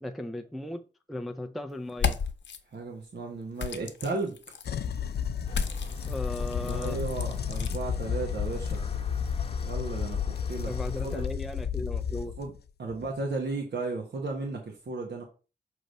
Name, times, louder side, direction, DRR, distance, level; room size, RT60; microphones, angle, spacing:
voice 1, 0.0-2.2 6.1-7.0 10.7-12.3, left 1 dB, ahead, 0.3 m, -37 dB
sound 1, 1.9-2.6 3.6-4.7 5.5-7.8, left 6 dB, 85° left, 0.8 m, -34 dB
voice 2, 2.7-4.6 6.6-8.8 9.6-10.7 11.0-11.2 12.4-12.5 12.8-15.2, right 3 dB, 70° right, 1.1 m, -34 dB
sound 2, 4.7-12.6 12.9-13.1, left 7 dB, 60° left, 0.4 m, -32 dB
sound 3, 5.4-11.3, left 3 dB, 30° left, 0.9 m, -38 dB
6.5 x 3.0 x 5.2 m
wide cardioid pair, 165°, 18 cm